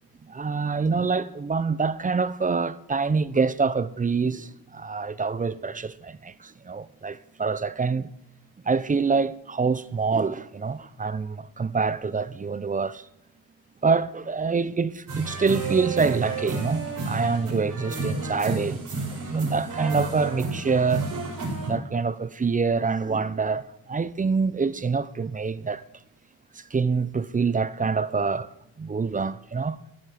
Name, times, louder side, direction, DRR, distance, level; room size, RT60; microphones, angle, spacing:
voice 1, 0.3-8.1 8.7-13.1 13.8-18.8 19.2-21.1 21.6-25.8 26.5-28.5 28.8-29.8, right 4 dB, 20° right, 0.4 m, -26 dB
sound 1, 15.1-21.7, right 3 dB, 55° right, 5.2 m, -31 dB
14.0 x 10.5 x 4.9 m
wide cardioid pair, 125°, 39 cm